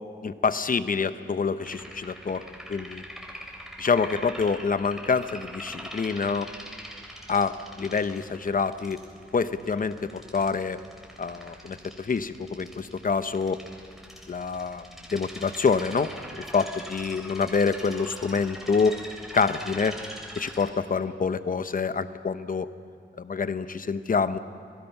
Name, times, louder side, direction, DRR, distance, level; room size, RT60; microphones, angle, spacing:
voice 1, 0.2-2.4 2.7-3.0 3.8-6.5 7.3-9.0 9.3-10.8 11.2-13.6 14.3-16.1 16.4-19.0 19.3-20.0 20.4-22.7 23.2-24.4, left 5 dB, 45° left, 12 dB, 0.9 m, -26 dB
sound 1, 1.6-20.7, equal, ahead, 3.6 m, -43 dB
28.0 x 18.0 x 5.9 m, 2.4 s
wide cardioid pair, 90°, 20 cm